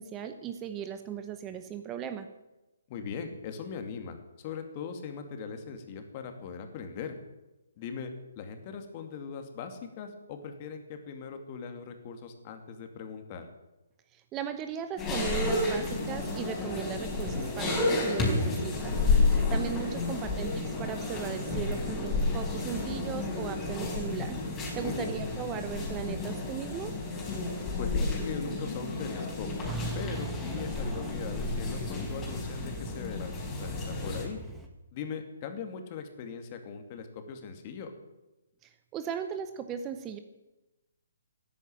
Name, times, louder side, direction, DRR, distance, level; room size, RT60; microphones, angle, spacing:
voice 1, 0.0-2.3 14.1-18.9 19.2-24.4 24.8-26.9 38.6-40.2, right 8 dB, 20° right, 9 dB, 1.0 m, -37 dB
voice 2, 2.9-7.2 7.8-13.5 20.0-20.3 24.8-25.2 27.8-29.5 29.9-34.4 34.9-37.9, left 6 dB, 35° left, 6 dB, 2.4 m, -40 dB
sound 1, 15.0-34.2, left 3 dB, 15° left, 4.3 m, -31 dB
Truck, 29.6-34.7, right 2 dB, ahead, 1.9 m, -40 dB
13.5 x 10.5 x 8.8 m, 1.0 s
hypercardioid pair, 145°, 0 cm